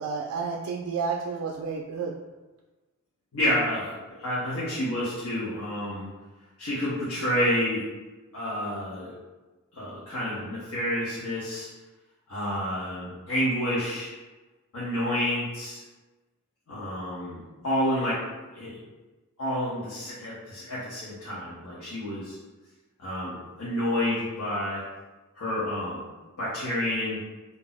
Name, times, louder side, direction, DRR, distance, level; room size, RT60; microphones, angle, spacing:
voice 1, 0.0-2.1, right 5 dB, 85° right, 0 dB, 0.3 m, -31 dB
voice 2, 3.3-3.9 4.2-6.1 6.6-7.8 8.3-9.1 9.7-11.7 12.3-14.1 14.7-15.8 16.7-18.2 18.5-18.8 19.4-22.4 23.0-24.8 25.4-26.1 26.4-27.2, left 1 dB, 75° left, -9 dB, 0.8 m, -29 dB
2.5 x 2.0 x 3.9 m, 1.2 s
head